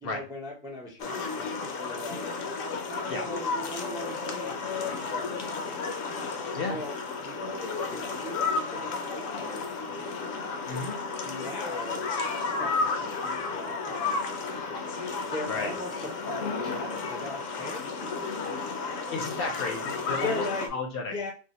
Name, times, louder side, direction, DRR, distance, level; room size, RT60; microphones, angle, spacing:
voice 1, 0.0-2.3 2.9-5.9 6.7-10.2 11.2-12.0 12.4-14.6 15.3-18.2 20.2-20.8 21.1-21.3, left 2 dB, 5° right, 0 dB, 0.3 m, -39 dB
sound 1, 1.0-20.7, left 4 dB, 80° left, 1.0 m, -32 dB
voice 2, 10.7-11.0 15.5-15.7 19.1-20.4 20.7-21.1, left 4 dB, 60° left, 2 dB, 0.7 m, -32 dB
2.7 x 2.1 x 3.9 m, 0.36 s
omnidirectional pair, 1.3 m